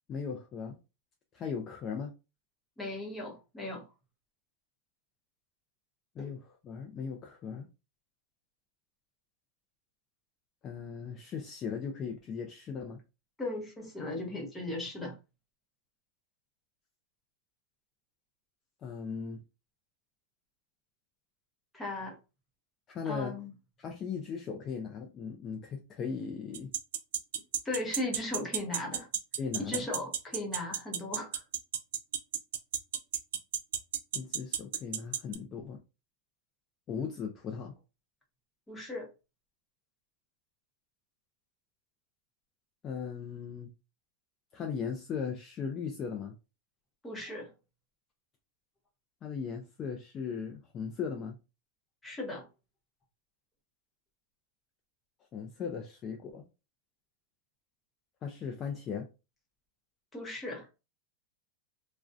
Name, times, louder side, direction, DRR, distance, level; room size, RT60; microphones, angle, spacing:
voice 1, 0.1-0.8 1.3-2.1 6.2-7.7 10.6-13.0 18.8-19.4 22.9-23.3 23.8-26.7 29.4-29.9 34.1-35.8 36.9-37.7 42.8-43.7 44.5-46.3 49.2-51.4 55.3-56.4 58.2-59.1, left 6 dB, 25° left, 0.3 m, -38 dB
voice 2, 2.8-3.9 6.2-6.3 13.4-15.2 21.7-22.2 23.1-23.5 27.6-29.1 29.6-31.4 38.7-39.1 47.0-47.5 52.0-52.5 60.1-60.7, left 2 dB, 10° left, 0.7 m, -37 dB
sound 1, 26.5-35.4, right 10 dB, 70° right, 0.3 m, -31 dB
2.3 x 2.1 x 2.5 m
supercardioid pair, 155°, 0 cm